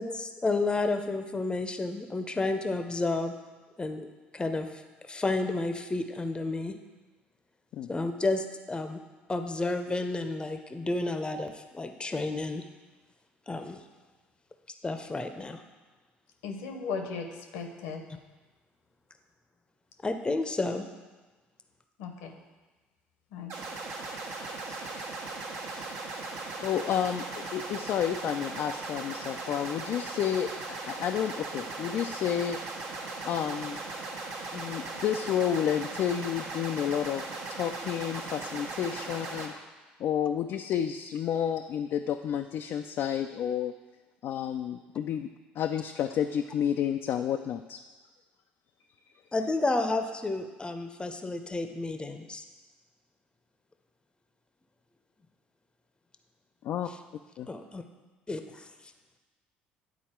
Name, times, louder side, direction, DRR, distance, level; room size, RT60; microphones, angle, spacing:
voice 1, 0.0-3.3 3.8-4.1 4.3-4.8 5.1-6.8 7.9-9.0 9.3-12.6 13.5-13.8 14.8-15.6 20.0-20.9 24.7-25.1 49.3-52.4 57.5-57.8 58.3-58.7, left 2 dB, 20° left, 7 dB, 0.7 m, -31 dB
voice 2, 16.4-18.0 22.0-22.3 23.3-23.5, left 5 dB, 75° left, 4 dB, 0.9 m, -36 dB
sound 1, 23.5-39.5, right 3 dB, 60° right, 1.2 m, -38 dB
voice 3, 26.6-32.6 33.2-33.8 34.5-37.2 37.5-39.5 40.0-43.7 44.2-45.3 45.6-47.8 56.6-56.9 57.4-57.5, left 9 dB, 55° left, 5 dB, 0.4 m, -30 dB
9.5 x 4.1 x 4.4 m, 1.3 s
hypercardioid pair, 60°, 5 cm